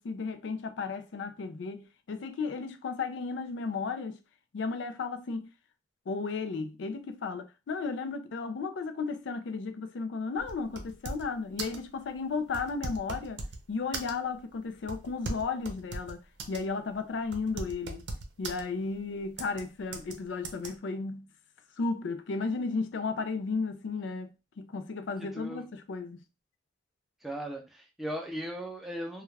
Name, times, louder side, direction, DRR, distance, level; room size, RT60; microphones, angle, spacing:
voice 1, 0.0-4.2 4.5-5.5 6.1-13.4 13.7-16.2 16.5-18.0 18.4-21.3 21.8-26.2, left 4 dB, 85° left, 0.4 m, -34 dB
sound 1, 10.4-11.3 11.6-11.9 12.5-13.6 13.9-14.4 14.9-16.6 16.9-17.0 17.3-18.6 19.4-19.6 19.9-20.1 20.4-20.7, right 3 dB, 75° right, 0.6 m, -38 dB
voice 2, 25.2-25.6 27.2-29.2, equal, ahead, 0.5 m, -37 dB
2.3 x 2.2 x 3.2 m
head